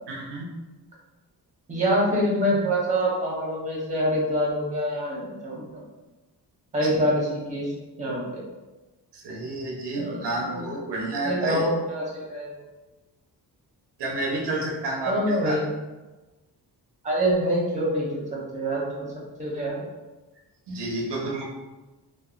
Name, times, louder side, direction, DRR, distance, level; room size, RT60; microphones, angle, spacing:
voice 1, 0.1-0.5 9.1-11.7 14.0-15.6 20.7-21.4, right 2 dB, 80° right, -1 dB, 0.7 m, -30 dB
voice 2, 1.7-5.8 6.7-7.7 8.0-8.4 10.0-10.7 11.2-12.6 15.1-15.7 17.0-19.1 19.4-19.8, equal, 20° right, -4 dB, 0.8 m, -26 dB
2.8 x 2.3 x 2.4 m, 1.1 s
wide cardioid pair, 110°, 41 cm